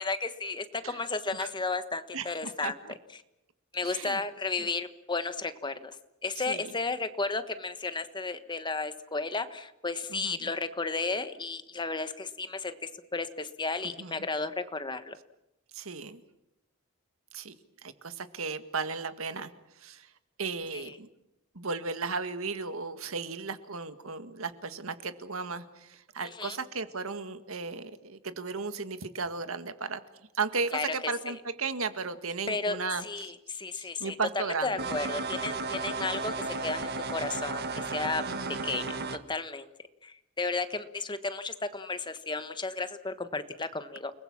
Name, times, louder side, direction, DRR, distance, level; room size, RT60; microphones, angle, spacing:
voice 1, 0.0-2.8 3.7-6.0 6.2-15.2 20.7-20.9 26.2-26.6 30.7-30.9 31.3-31.4 32.5-34.1 34.6-38.2 38.6-39.7 40.0-44.1, left 3 dB, 20° left, 10 dB, 1.3 m, -33 dB
voice 2, 2.1-2.9 3.8-4.2 4.6-4.7 6.4-6.7 10.1-10.5 14.0-14.3 15.7-16.2 17.3-17.6 17.8-19.5 19.8-20.1 20.4-21.1 21.6-30.0 30.3-33.3 33.7-34.9 38.3-38.6, right 4 dB, 75° right, 10 dB, 1.8 m, -35 dB
sound 1, 34.8-39.2, right 3 dB, 50° right, 1.5 m, -34 dB
29.5 x 20.5 x 7.4 m, 0.89 s
head